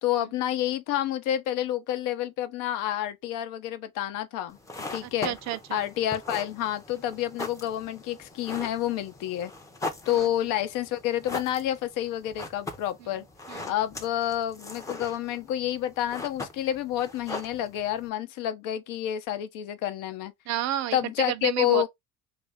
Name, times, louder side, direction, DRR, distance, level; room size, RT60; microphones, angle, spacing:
voice 1, 0.0-4.6 4.9-5.3 5.7-9.5 10.1-13.2 13.6-20.3 20.9-21.9, left 12 dB, 70° left, 0.8 m, -29 dB
sound 1, 4.5-18.1, left 2 dB, 10° left, 0.6 m, -40 dB
voice 2, 5.0-5.8 10.1-10.3 13.5-13.7 20.5-21.9, right 12 dB, 55° right, 0.5 m, -31 dB
3.1 x 2.6 x 3.4 m
cardioid pair, 135°, 33 cm